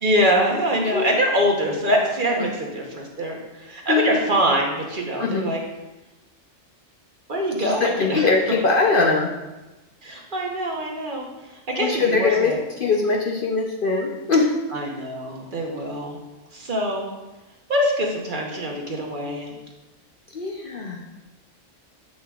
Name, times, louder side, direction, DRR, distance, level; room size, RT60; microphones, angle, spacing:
voice 1, 0.0-5.6 7.3-8.3 10.0-11.3 11.7-12.6 14.7-16.2 16.5-17.1 17.7-19.5, equal, 45° right, 0 dB, 1.0 m, -24 dB
voice 2, 0.8-1.2 2.4-2.5 3.9-4.2 5.2-5.4 7.6-9.3 11.8-14.5 20.3-21.0, left 4 dB, 55° left, 0 dB, 0.7 m, -22 dB
7.6 x 6.3 x 2.4 m, 1.1 s
omnidirectional pair, 1.3 m